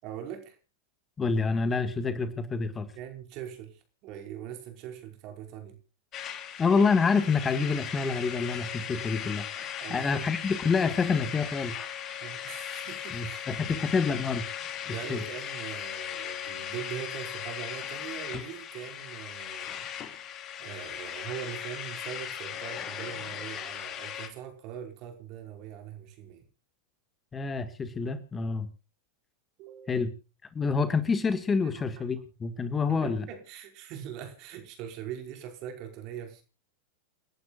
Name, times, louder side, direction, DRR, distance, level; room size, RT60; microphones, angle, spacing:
voice 1, 0.0-0.6 2.9-5.8 9.8-10.3 12.2-13.9 14.8-20.2 20.6-26.4 29.6-30.0 31.6-32.0 32.8-36.4, right 9 dB, 50° right, 5 dB, 5.0 m, -42 dB
voice 2, 1.2-2.9 6.6-9.4 9.9-11.7 13.1-14.4 15.1-15.2 27.3-28.7 29.9-30.1 30.5-33.3, left 4 dB, 20° left, 11 dB, 1.7 m, -27 dB
sound 1, 6.1-24.3, left 9 dB, 35° left, 3.0 m, -38 dB
29.5 x 11.5 x 2.4 m, 0.32 s
hypercardioid pair, 100°, 0 cm